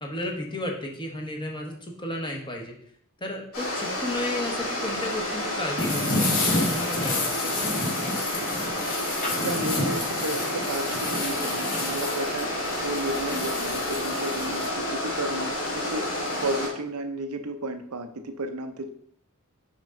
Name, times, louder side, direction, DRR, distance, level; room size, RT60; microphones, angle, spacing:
voice 1, 0.0-2.7 3.2-7.5, left 1 dB, 20° left, 0 dB, 1.2 m, -33 dB
sound 1, 3.5-16.7, left 1 dB, 90° left, 3.0 m, -30 dB
sound 2, 5.8-14.7, left 2 dB, 40° left, 1.4 m, -30 dB
voice 2, 9.4-16.1 16.4-18.9, right 1 dB, 85° right, 8 dB, 0.7 m, -33 dB
6.3 x 5.3 x 3.7 m, 0.63 s
head